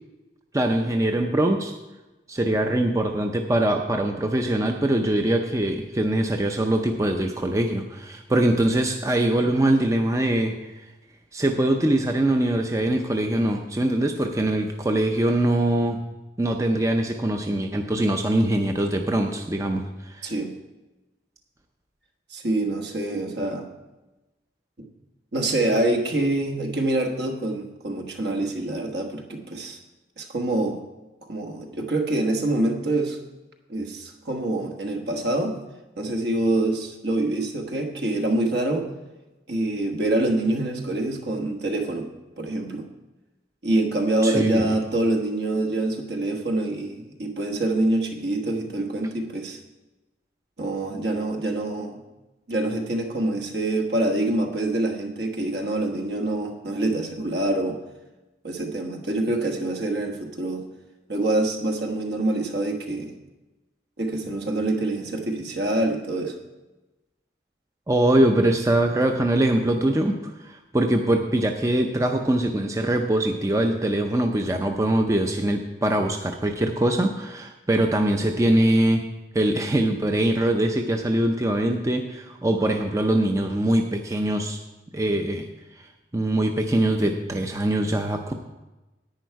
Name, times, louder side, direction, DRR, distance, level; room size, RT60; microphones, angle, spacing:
voice 1, 0.5-1.7 2.3-10.8 11.3-16.0 16.4-20.3 44.2-44.8 67.9-79.0 79.3-84.6 84.9-85.5 85.8-88.3, right 1 dB, 15° right, 4 dB, 0.5 m, -23 dB
voice 2, 22.3-23.6 25.3-29.8 30.2-30.8 31.3-33.2 33.7-35.6 36.0-38.9 39.5-42.1 42.4-42.8 43.6-49.6 50.6-52.0 52.5-57.8 58.4-60.6 61.1-63.1 64.0-66.4, right 2 dB, 65° right, 4 dB, 1.3 m, -25 dB
10.5 x 9.2 x 4.6 m, 1.1 s
head